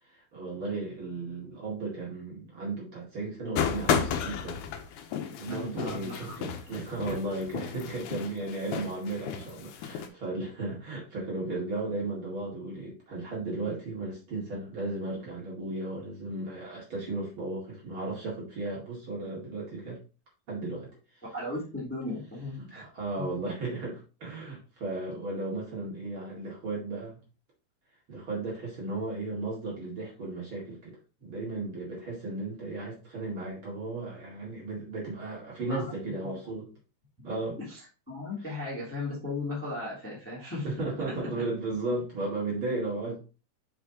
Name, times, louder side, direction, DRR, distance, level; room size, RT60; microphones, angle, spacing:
voice 1, 0.1-4.6 5.4-20.0 20.5-20.9 22.6-27.2 28.1-36.6 37.2-37.6 40.6-43.2, right 2 dB, 45° right, -4 dB, 2.7 m, -35 dB
sound 1, 3.6-10.1, left 8 dB, 85° left, 2.2 m, -33 dB
voice 2, 5.4-6.4 7.0-7.1 10.7-10.8 21.3-22.8 23.2-23.4 35.6-36.0 36.2-36.5 37.6-37.8 38.1-40.7 41.1-41.4, left 2 dB, 5° left, -5 dB, 2.2 m, -36 dB
7.0 x 5.7 x 2.8 m, 0.34 s
omnidirectional pair, 3.5 m